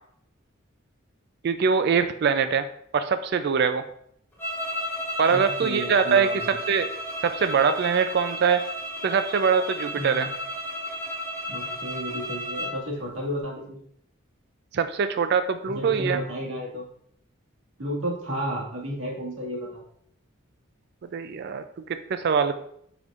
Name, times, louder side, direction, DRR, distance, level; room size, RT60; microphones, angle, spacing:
voice 1, 1.4-2.6 2.9-3.8 5.2-6.9 7.2-8.6 9.0-10.3 14.7-16.2 21.1-22.5, right 6 dB, 55° right, 10 dB, 0.4 m, -23 dB
sound 1, 4.4-12.8, equal, 10° left, 1.9 m, -33 dB
voice 2, 5.3-6.5 10.0-10.3 11.5-13.8 15.7-16.9 17.8-19.8, equal, 80° right, -3 dB, 2.0 m, -32 dB
8.0 x 5.1 x 2.5 m, 0.70 s
head